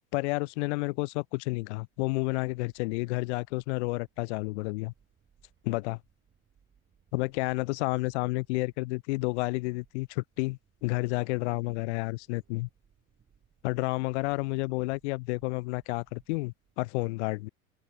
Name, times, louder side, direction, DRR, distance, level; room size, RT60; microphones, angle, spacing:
voice 1, 0.1-4.9 5.6-6.0 7.1-12.7 13.6-17.5, left 24 dB, 50° left, 0.5 m, -30 dB
sound 1, 1.2-17.0, right 7 dB, 25° right, 7.4 m, -68 dB
open air
figure-of-eight pair, 85°, 44 cm